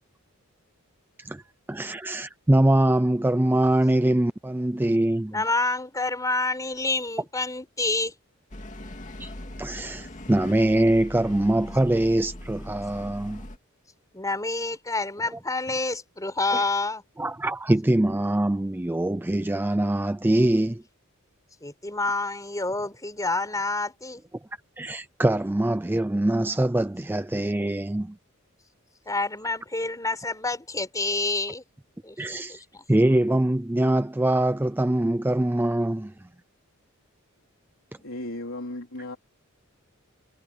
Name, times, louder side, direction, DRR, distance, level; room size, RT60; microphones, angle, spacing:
voice 1, 1.7-5.4 9.2-9.3 9.6-13.5 16.5-16.6 17.2-20.8 24.8-28.2 32.2-32.6 32.9-36.3, right 1 dB, 10° right, 0.4 m, -23 dB
voice 2, 5.3-8.1 14.1-17.0 21.6-24.2 29.1-31.6 32.0-32.2, left 3 dB, 15° left, 4.8 m, -28 dB
sound 1, 8.5-13.6, left 1 dB, 35° left, 2.3 m, -40 dB
voice 3, 38.0-39.2, left 1 dB, 70° left, 3.9 m, -35 dB
head